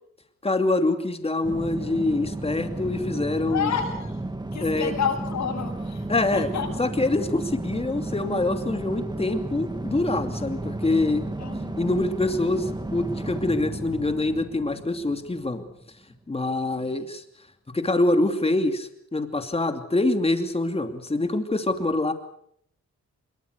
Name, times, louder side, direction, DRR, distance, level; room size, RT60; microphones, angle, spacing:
voice 1, 0.4-3.7 4.6-4.9 6.1-6.5 6.8-11.3 11.8-15.7 16.3-17.2 17.7-22.1, left 2 dB, 20° left, 7 dB, 2.8 m, -25 dB
sound 1, 1.4-15.8, right 2 dB, 15° right, 2.1 m, -33 dB
voice 2, 3.5-4.2 4.5-6.0 6.3-6.7 11.4-11.8 16.8-17.0, left 7 dB, 75° left, 1 dB, 7.8 m, -30 dB
24.5 x 23.0 x 6.7 m, 0.68 s
wide cardioid pair, 120°, 29 cm